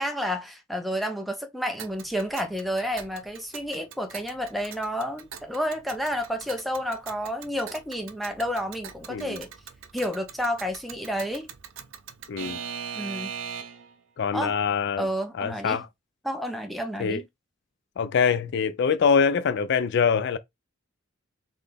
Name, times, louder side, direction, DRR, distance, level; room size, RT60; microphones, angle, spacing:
voice 1, 0.0-9.5 9.9-11.5 12.9-13.4 14.3-14.6 15.0-15.8 16.2-17.2, equal, ahead, 0.8 m, -30 dB
Alarm / Clock, 1.8-13.9, right 8 dB, 70° right, 0.6 m, -41 dB
voice 2, 9.1-9.4 12.3-12.6 14.2-15.1 15.4-15.9 17.0-17.2 18.0-20.4, left 6 dB, 60° left, 0.4 m, -24 dB
4.0 x 3.3 x 3.4 m
head